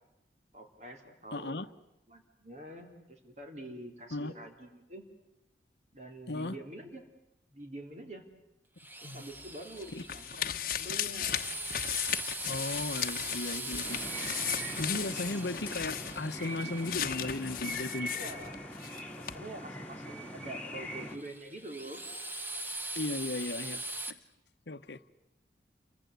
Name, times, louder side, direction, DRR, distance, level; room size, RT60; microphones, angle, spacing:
voice 1, 0.5-1.7 2.1-5.1 5.9-7.1 7.5-8.3 9.0-10.5 10.8-11.5 18.1-18.6 19.2-22.0, right 1 dB, 40° right, 3.6 m, -46 dB
voice 2, 1.3-1.7 4.1-4.3 6.3-6.6 9.0-9.2 9.9-10.0 12.4-14.0 14.8-18.1 22.9-23.8 24.1-24.2 24.7-25.0, left 2 dB, 75° left, 1.1 m, -36 dB
Drill, 8.8-17.7 21.1-24.1, right 2 dB, 10° right, 1.2 m, -41 dB
sound 1, 9.4-19.0 19.3-19.4, left 10 dB, 50° left, 1.2 m, -36 dB
sound 2, 13.8-21.2, equal, 10° left, 2.5 m, -41 dB
29.5 x 24.5 x 8.3 m
head